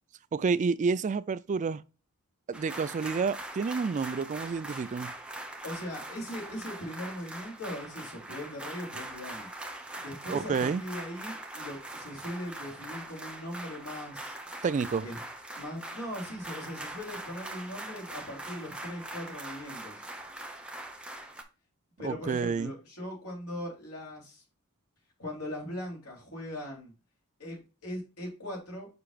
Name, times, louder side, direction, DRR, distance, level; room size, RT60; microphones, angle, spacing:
voice 1, 0.3-1.8 2.5-5.1 10.3-10.8 14.6-15.1 22.0-22.7, right 5 dB, 35° right, 0.3 m, -29 dB
sound 1, 2.5-21.4, right 1 dB, 5° right, 0.9 m, -42 dB
voice 2, 5.6-9.5 9.9-14.4 15.0-15.2 15.5-20.0 22.0-24.4 25.2-26.9 27.4-28.9, left 1 dB, 90° left, 3.2 m, -40 dB
6.7 x 5.8 x 2.4 m
head